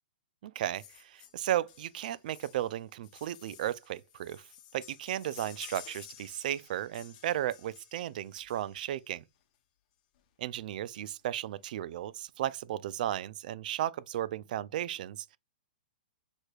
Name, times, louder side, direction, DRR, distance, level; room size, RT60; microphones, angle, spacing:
voice 1, 0.4-4.5 4.7-9.2 10.4-15.4, right 12 dB, 55° right, 0.3 m, -35 dB
sound 1, 0.7-9.1 10.2-10.3 10.6-10.7 10.9-11.1 11.4-12.0 12.5-12.6, left 11 dB, 45° left, 0.9 m, -53 dB
6.1 x 3.3 x 2.3 m
hypercardioid pair, 145°, 5 cm